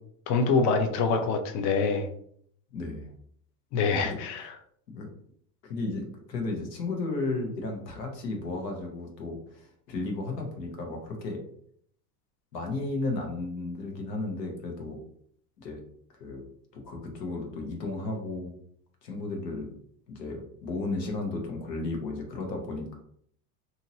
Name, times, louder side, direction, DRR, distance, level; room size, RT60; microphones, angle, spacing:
voice 1, 0.3-2.1 3.7-4.6, left 4 dB, 40° left, 5 dB, 0.5 m, -25 dB
voice 2, 2.7-3.1 4.0-4.2 4.9-5.1 5.6-11.4 12.5-15.0 15.6-15.8 16.1-16.4 16.7-18.5 19.0-19.7 20.1-23.0, left 2 dB, 90° left, 2 dB, 1.1 m, -34 dB
2.8 x 2.8 x 2.7 m, 0.64 s
hypercardioid pair, 90°, 48 cm